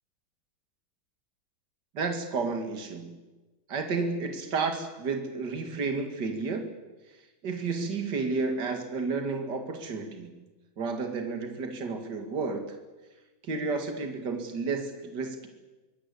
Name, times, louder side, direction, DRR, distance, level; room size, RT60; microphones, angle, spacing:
voice 1, 1.9-3.2 3.7-6.7 7.4-10.3 10.8-12.8 13.4-15.5, right 4 dB, 60° right, 5 dB, 2.7 m, -31 dB
24.5 x 19.0 x 8.4 m, 1.2 s
omnidirectional pair, 2.2 m